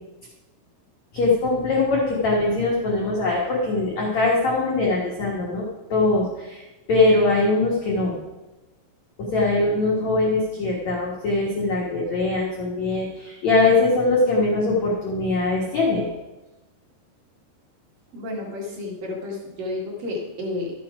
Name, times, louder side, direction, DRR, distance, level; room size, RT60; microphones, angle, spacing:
voice 1, 1.1-8.2 9.2-16.1, left 2 dB, 80° left, -4 dB, 1.6 m, -22 dB
voice 2, 18.1-20.7, left 2 dB, 55° right, -2 dB, 3.0 m, -31 dB
12.5 x 8.8 x 4.9 m, 1.1 s
omnidirectional pair, 5.7 m